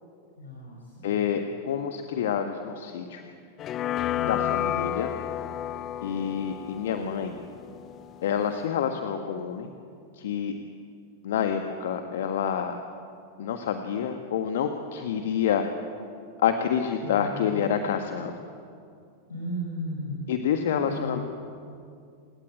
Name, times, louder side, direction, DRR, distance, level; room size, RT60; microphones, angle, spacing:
voice 1, 0.4-1.1 4.1-4.6 17.0-17.6 19.3-20.3 20.8-21.2, equal, 75° left, -2 dB, 5.8 m, -36 dB
voice 2, 1.0-3.2 4.2-5.1 6.0-7.3 8.2-9.7 10.2-10.5 11.2-12.7 13.4-15.6 16.4-18.5 20.3-21.2, left 8 dB, 55° left, 6 dB, 1.5 m, -28 dB
sound 1, 3.6-8.6, left 12 dB, 30° left, 0.7 m, -32 dB
28.5 x 17.5 x 9.1 m, 2.4 s
figure-of-eight pair, 90°, 0 cm